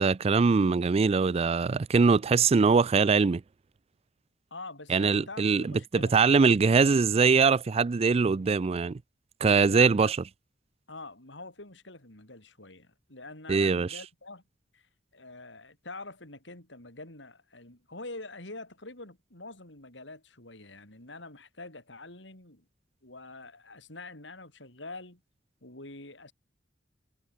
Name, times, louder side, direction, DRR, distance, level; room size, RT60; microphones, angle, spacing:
voice 1, 0.0-3.4 4.9-9.0 9.4-10.2 13.5-13.9, right 5 dB, 35° right, 0.4 m, -22 dB
voice 2, 4.5-6.2 9.7-10.1 10.9-14.4 14.7-22.7 23.0-25.2 25.6-26.3, left 2 dB, 70° left, 7.5 m, -45 dB
head